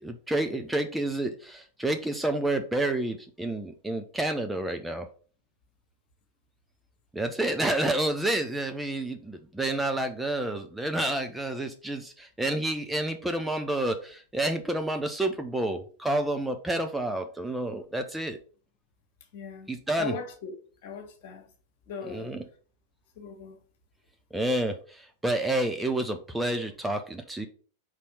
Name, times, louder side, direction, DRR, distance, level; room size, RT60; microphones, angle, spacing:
voice 1, 0.0-5.1 7.1-18.4 19.7-20.2 22.1-22.4 24.3-27.5, right 1 dB, 5° right, 0.6 m, -29 dB
voice 2, 19.3-20.5 20.8-21.4 21.9-22.3 23.2-23.6, left 5 dB, 50° left, 1.6 m, -39 dB
4.8 x 4.2 x 5.6 m
figure-of-eight pair, 90°, 0 cm